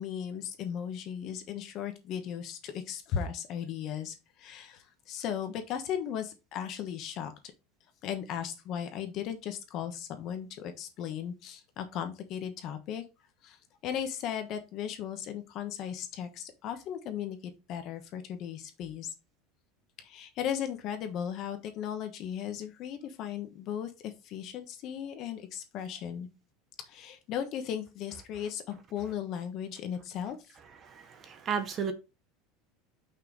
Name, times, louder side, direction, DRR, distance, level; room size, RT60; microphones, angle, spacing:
voice 1, 0.0-7.3 8.0-13.0 13.4-13.6 13.8-19.1 20.0-26.3 26.8-30.6, left 9 dB, 35° left, 1.2 m, -36 dB
voice 2, 30.8-31.9, right 7 dB, 25° right, 0.8 m, -33 dB
5.7 x 4.4 x 5.1 m
cardioid pair, 175°, 0 cm